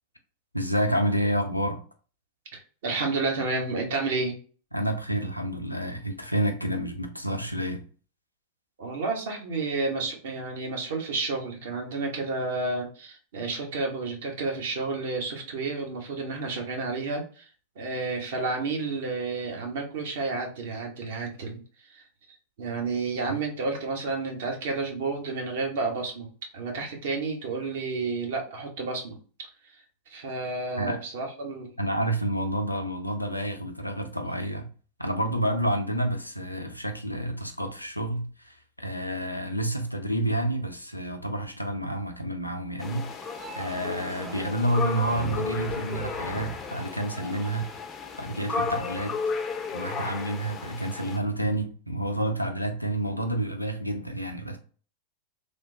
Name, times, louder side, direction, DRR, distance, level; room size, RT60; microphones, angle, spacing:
voice 1, 0.5-1.8 4.7-7.8 23.3-23.4 30.8-31.0 31.8-34.7 35.0-43.3 43.5-47.7 48.2-49.2 49.7-54.6, right 1 dB, 90° left, 0.4 m, -29 dB
voice 2, 2.5-4.3 8.8-17.5 17.8-21.6 21.9-22.0 22.6-26.3 26.5-29.2 30.1-31.7, right 3 dB, 55° right, 0.8 m, -31 dB
sound 1, 42.8-51.2, left 4 dB, 25° left, 0.4 m, -34 dB
Crowd, 43.2-49.0, right 4 dB, 35° right, 0.4 m, -46 dB
3.2 x 2.0 x 2.6 m
figure-of-eight pair, 90°, 0 cm